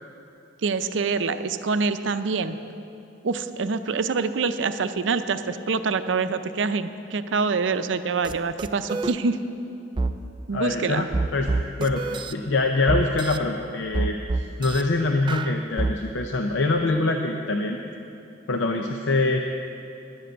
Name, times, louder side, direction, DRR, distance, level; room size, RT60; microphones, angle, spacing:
voice 1, 0.6-2.6 3.2-9.4 10.5-11.1, right 4 dB, 75° right, 11 dB, 0.5 m, -25 dB
sound 1, 8.2-8.3 8.6-9.1 10.0-10.1 11.1-12.3 12.9-13.4 13.9-14.8 15.3-15.9, right 3 dB, 25° right, 0.4 m, -26 dB
voice 2, 10.5-11.5 11.8-12.0 12.3-17.8 18.5-19.4, left 2 dB, 70° left, 4 dB, 0.6 m, -24 dB
11.5 x 7.6 x 7.9 m, 2.7 s
head